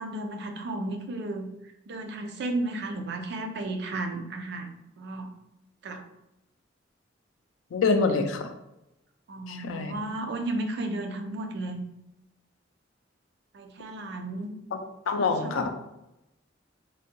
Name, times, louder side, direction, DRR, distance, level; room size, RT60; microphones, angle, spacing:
voice 1, 0.0-1.4 1.9-4.7 5.0-5.3 5.8-6.0 7.9-8.3 9.3-11.8 13.5-14.5 15.2-15.7, right 2 dB, 60° right, 5 dB, 0.4 m, -34 dB
voice 2, 7.7-8.5 9.5-9.9 14.7-15.7, left 4 dB, 90° left, 7 dB, 0.4 m, -26 dB
3.6 x 2.2 x 2.9 m, 0.90 s
head